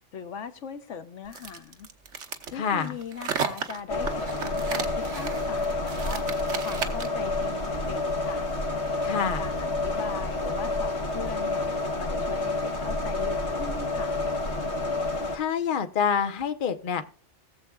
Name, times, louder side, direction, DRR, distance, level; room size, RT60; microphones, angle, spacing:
voice 1, 0.1-1.9 2.5-8.5 9.1-11.7 12.0-14.1, left 6 dB, 90° left, 10 dB, 1.3 m, -40 dB
sound 1, 1.3-7.2, right 6 dB, 85° right, 1.4 m, -34 dB
voice 2, 2.5-2.9 9.0-9.5 15.3-17.0, left 7 dB, 50° left, 8 dB, 1.0 m, -27 dB
sound 2, 3.9-15.4, left 2 dB, 65° left, 1.7 m, -29 dB
19.0 x 7.4 x 2.3 m, 0.38 s
omnidirectional pair, 1.2 m